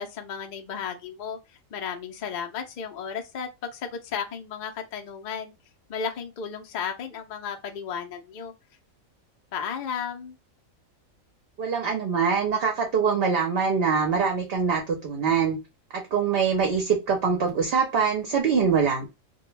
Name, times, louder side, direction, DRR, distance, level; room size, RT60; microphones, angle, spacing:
voice 1, 0.0-5.5 5.9-8.5 9.5-10.4, left 7 dB, 75° left, 0.4 m, -34 dB
voice 2, 11.6-15.6 15.9-19.1, right 6 dB, 55° right, 0.7 m, -24 dB
2.2 x 2.1 x 3.0 m
omnidirectional pair, 1.5 m